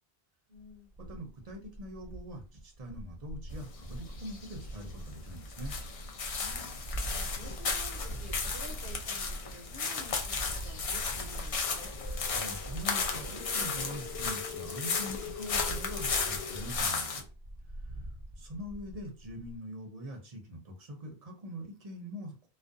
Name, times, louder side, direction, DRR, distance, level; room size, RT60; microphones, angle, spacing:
sound 1, 0.5-14.7 15.0-19.6, right 1 dB, 25° left, 0.8 m, -43 dB
voice 1, 0.5-0.9 6.3-6.8 7.1-11.9 17.9-18.2, equal, 70° right, 0 dB, 0.8 m, -51 dB
voice 2, 1.1-5.7 12.3-17.3 18.4-22.5, equal, 45° right, 2 dB, 0.6 m, -43 dB
sound 2, 3.5-17.2, left 5 dB, 55° left, 0.4 m, -35 dB
sound 3, 11.6-16.6, left 7 dB, 90° left, 1.0 m, -44 dB
2.4 x 2.1 x 2.5 m, 0.34 s
omnidirectional pair, 1.1 m